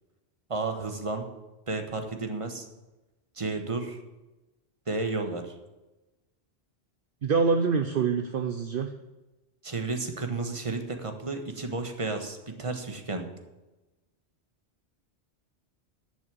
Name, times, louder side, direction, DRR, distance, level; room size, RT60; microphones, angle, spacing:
voice 1, 0.5-1.3 1.7-2.7 3.4-4.0 4.9-5.5 9.6-13.3, right 3 dB, 30° right, 6 dB, 1.4 m, -32 dB
voice 2, 7.2-8.9, right 5 dB, 55° right, 6 dB, 0.9 m, -25 dB
10.5 x 6.3 x 8.5 m, 1.1 s
omnidirectional pair, 1.1 m